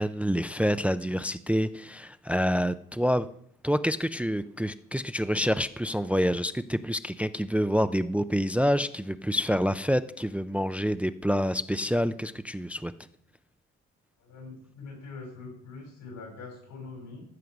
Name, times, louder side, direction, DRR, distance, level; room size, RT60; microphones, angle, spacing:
voice 1, 0.0-3.3 3.6-12.9, equal, 5° right, 13 dB, 0.4 m, -27 dB
voice 2, 14.2-17.2, left 3 dB, 90° left, 1 dB, 6.4 m, -43 dB
14.5 x 6.5 x 6.0 m, 0.65 s
cardioid pair, 90°, 30 cm